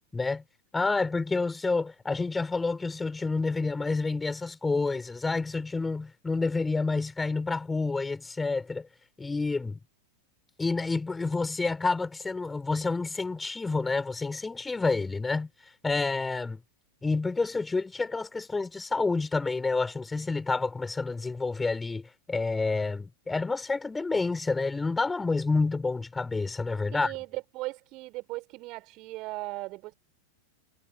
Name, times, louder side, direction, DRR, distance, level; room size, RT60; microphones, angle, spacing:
voice 1, 0.1-0.4 0.7-8.9 9.2-9.8 10.6-15.5 15.8-16.6 17.0-27.1, left 3 dB, 10° left, 4.6 m, -29 dB
voice 2, 26.9-29.9, right 21 dB, 40° right, 6.1 m, -38 dB
figure-of-eight pair, 90°, 0 cm